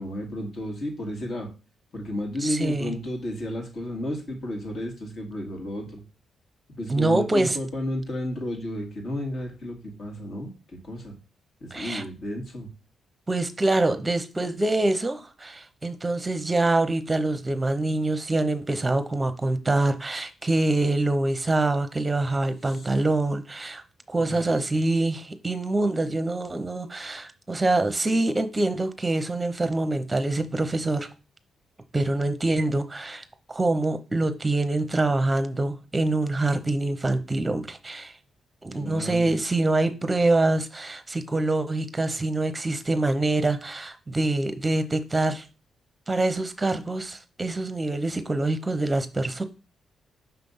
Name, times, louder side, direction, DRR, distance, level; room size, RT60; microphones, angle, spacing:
voice 1, 0.0-1.5 1.9-6.0 6.8-11.1 11.6-12.7 22.7-22.8 24.2-24.4 38.8-39.3, left 1 dB, 50° left, 2.2 m, -32 dB
voice 2, 2.4-2.9 6.9-7.6 11.7-12.0 13.3-23.8 24.1-31.1 31.9-38.1 38.6-45.5 46.1-49.4, right 2 dB, 20° right, 0.8 m, -25 dB
5.9 x 3.4 x 5.4 m
cardioid pair, 105°, 0 cm